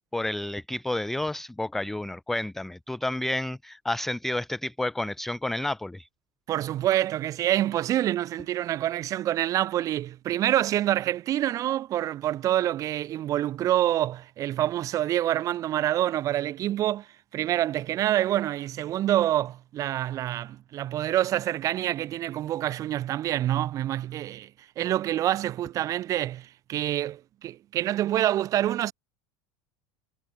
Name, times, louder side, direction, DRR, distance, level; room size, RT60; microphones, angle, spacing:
voice 1, 0.1-6.1, left 1 dB, ahead, 0.4 m, -30 dB
voice 2, 6.5-28.9, right 13 dB, 25° right, 3.0 m, -27 dB
supercardioid pair, 175°, 12 cm